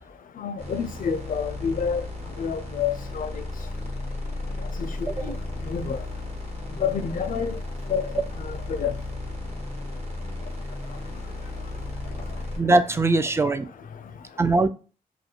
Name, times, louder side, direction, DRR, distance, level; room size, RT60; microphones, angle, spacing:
voice 1, 0.4-2.0 2.4-3.3 5.0-5.4 5.7-6.0 6.8-7.6 7.9-8.2 8.8-8.9, left 7 dB, 60° left, 0.4 m, -28 dB
sound 1, 0.6-12.6, left 2 dB, 40° right, 1.2 m, -34 dB
voice 2, 12.6-13.7 14.4-14.7, right 2 dB, 15° right, 0.3 m, -21 dB
2.5 x 2.1 x 2.8 m
cardioid pair, 50°, 16 cm